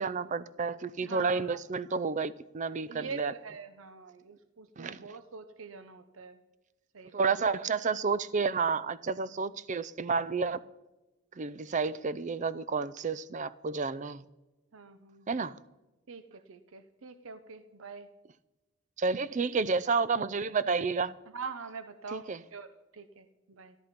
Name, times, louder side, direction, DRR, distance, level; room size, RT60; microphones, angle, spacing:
voice 1, 0.0-3.3 4.8-5.0 7.1-10.6 11.4-14.3 15.3-15.6 19.0-21.1 22.1-22.4, right 4 dB, 35° right, 0.4 m, -30 dB
voice 2, 1.0-1.6 1.9-2.0 2.9-6.4 6.9-7.3 14.7-15.3 16.1-18.1 21.3-23.8, right 5 dB, 70° right, 0.7 m, -45 dB
13.5 x 12.0 x 5.2 m
head